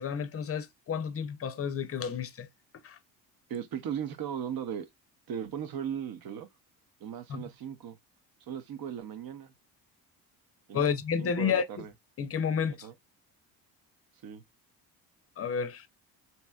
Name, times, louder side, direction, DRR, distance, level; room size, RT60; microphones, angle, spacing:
voice 1, 0.0-2.5 2.8-3.0 7.3-7.5 10.7-11.7 12.2-12.9 15.4-15.9, left 7 dB, 35° left, 0.6 m, -31 dB
voice 2, 3.5-4.9 5.3-6.5 7.0-8.0 8.5-9.5 10.7-10.9 11.2-11.9 12.8-12.9 14.2-14.4, right 8 dB, 55° right, 0.8 m, -37 dB
3.0 x 2.8 x 2.2 m
supercardioid pair, 70°, 43 cm